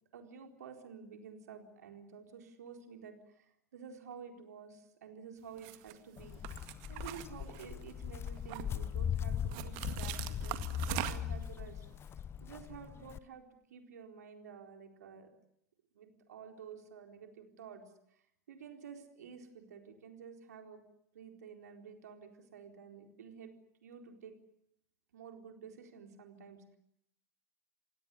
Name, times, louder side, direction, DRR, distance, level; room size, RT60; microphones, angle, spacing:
voice 1, 0.1-6.4 6.9-11.8 12.4-13.4 13.7-15.3 15.9-18.2 18.5-20.8 21.1-23.5 23.8-24.4 25.1-26.8, right 6 dB, 70° right, 4 dB, 4.2 m, -51 dB
sound 1, 5.6-5.9 6.4-7.9 8.3-8.9 9.5-11.4, right 16 dB, 50° right, 1.9 m, -41 dB
Walk footsteps, 6.2-13.2, left 9 dB, 25° left, 0.9 m, -39 dB
28.5 x 17.5 x 9.7 m, 0.77 s
figure-of-eight pair, 90°, 9 cm